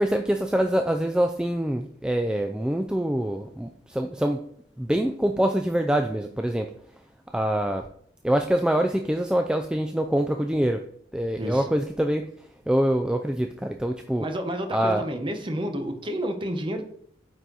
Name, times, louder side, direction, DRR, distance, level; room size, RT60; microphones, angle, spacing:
voice 1, 0.0-4.4 4.8-6.7 7.3-7.9 8.2-10.8 11.1-12.2 12.7-14.3 14.7-15.0, right 1 dB, 5° right, 5 dB, 0.3 m, -25 dB
voice 2, 11.4-11.7 14.2-16.8, equal, 25° right, 6 dB, 0.8 m, -30 dB
9.2 x 4.2 x 3.9 m, 0.63 s
head